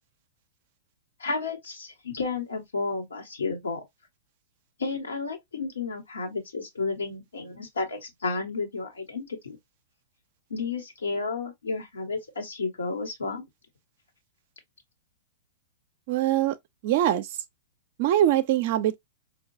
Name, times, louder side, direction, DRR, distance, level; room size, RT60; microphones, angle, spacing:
voice 1, 1.2-3.8 4.8-9.6 10.5-13.5, left 4 dB, 80° left, 1.2 m, -32 dB
voice 2, 16.1-16.6 16.8-17.4 18.0-19.0, right 12 dB, 50° right, 0.4 m, -23 dB
4.5 x 2.3 x 2.5 m
hypercardioid pair, 105°, 0 cm